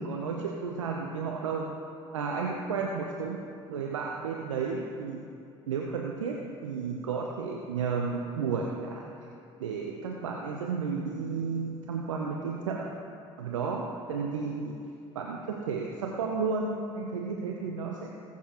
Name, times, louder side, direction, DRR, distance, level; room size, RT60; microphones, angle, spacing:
voice 1, 0.0-1.6 2.1-5.2 5.7-6.4 6.6-9.0 9.6-12.9 13.4-14.7 15.2-18.1, right 5 dB, 80° right, 0 dB, 0.8 m, -32 dB
21.0 x 7.1 x 3.0 m, 2.6 s
figure-of-eight pair, 55°, 16 cm